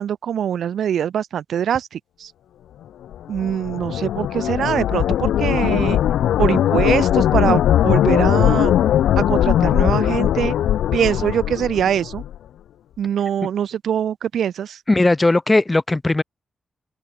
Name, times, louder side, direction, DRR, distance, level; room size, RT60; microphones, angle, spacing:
voice 1, 0.0-2.3 3.3-6.0 6.4-8.7 9.2-10.5 10.9-12.2 13.0-14.8, right 9 dB, 80° right, 1.5 m, -23 dB
sound 1, 3.1-12.4, left 11 dB, 85° left, 0.7 m, -19 dB
voice 2, 14.9-16.2, left 2 dB, 25° left, 4.6 m, -17 dB
open air
supercardioid pair, 45°, 0 cm